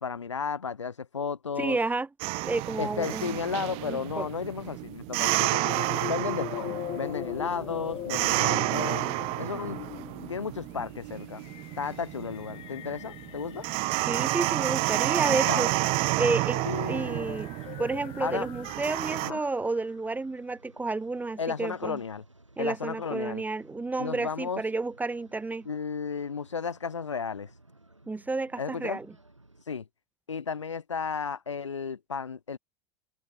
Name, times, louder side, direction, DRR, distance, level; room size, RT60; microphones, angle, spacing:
voice 1, 0.0-1.8 2.8-5.6 6.0-9.1 9.4-9.8 10.3-11.4 11.8-13.6 15.5-15.7 16.6-17.3 18.2-18.5 19.2-19.4 21.4-22.2 22.6-23.4 24.0-24.6 25.7-27.5 28.6-29.0 29.7-29.8 30.3-32.6, left 6 dB, 75° left, 1.8 m, -33 dB
voice 2, 1.6-2.1 2.4-3.4 3.9-4.2 14.1-15.7 16.2-16.6 16.9-22.0 22.6-25.7 28.1-29.1, right 3 dB, 10° right, 1.5 m, -31 dB
sound 1, 2.2-19.3, right 25 dB, 40° right, 0.4 m, -30 dB
sound 2, 5.2-19.8, left 15 dB, 35° left, 0.8 m, -41 dB
sound 3, 14.3-29.6, right 2 dB, 85° right, 6.4 m, -57 dB
open air
figure-of-eight pair, 80°, 15 cm